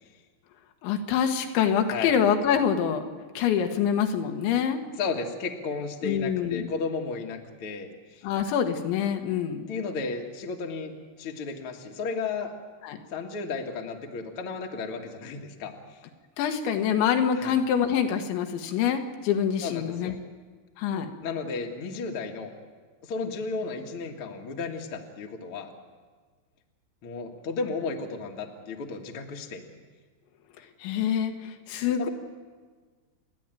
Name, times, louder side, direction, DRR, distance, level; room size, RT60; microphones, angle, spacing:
voice 1, 0.8-3.1 3.4-4.8 6.0-6.7 8.2-9.6 12.8-13.0 16.4-20.2 20.8-21.1 30.8-32.1, left 8 dB, 85° left, 5 dB, 3.6 m, -25 dB
voice 2, 5.0-8.2 9.7-10.9 11.2-12.5 13.1-16.0 17.4-17.5 19.6-20.2 21.2-22.5 23.0-25.7 27.0-29.6 32.0-32.1, left 4 dB, 55° left, 2 dB, 1.6 m, -34 dB
29.5 x 11.0 x 9.1 m, 1.5 s
omnidirectional pair, 5.1 m